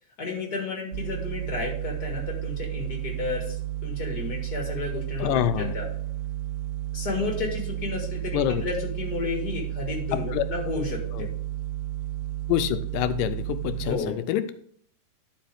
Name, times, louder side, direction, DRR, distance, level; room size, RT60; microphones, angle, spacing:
voice 1, 0.2-3.6 3.8-5.9 6.9-11.3 13.8-14.2, left 4 dB, 35° left, 0 dB, 1.9 m, -32 dB
sound 1, 0.9-14.0, right 15 dB, 85° right, 2.2 m, -32 dB
voice 2, 5.2-5.7 8.3-8.6 10.3-10.4 11.2-11.3 12.5-14.5, left 11 dB, 85° left, 10 dB, 2.2 m, -26 dB
11.5 x 5.0 x 3.5 m, 0.63 s
omnidirectional pair, 3.8 m